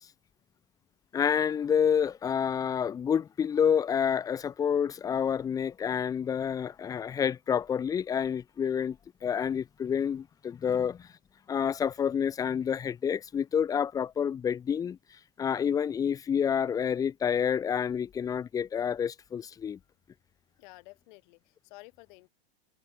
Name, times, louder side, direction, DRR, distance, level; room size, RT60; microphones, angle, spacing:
voice 1, 1.1-9.0 9.2-11.1 11.5-15.0 15.4-19.8, left 7 dB, 10° left, 0.5 m, -28 dB
voice 2, 20.6-22.3, left 24 dB, 50° left, 7.0 m, -52 dB
supercardioid pair, 145°, 31 cm